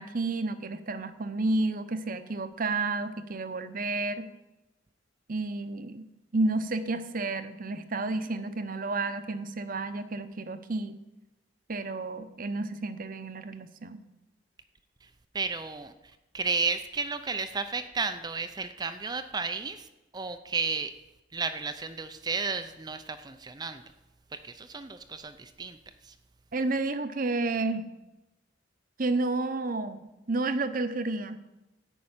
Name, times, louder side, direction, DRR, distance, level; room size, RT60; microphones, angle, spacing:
voice 1, 0.0-4.3 5.3-6.1 6.3-11.0 11.7-14.0 26.5-27.9 29.0-31.4, right 2 dB, 50° right, 10 dB, 0.8 m, -31 dB
voice 2, 15.3-15.9 16.3-19.9 20.1-20.9 21.3-23.8 24.3-25.8 26.1-26.2, right 4 dB, 20° right, 9 dB, 0.5 m, -33 dB
14.0 x 5.4 x 8.8 m, 1.0 s
head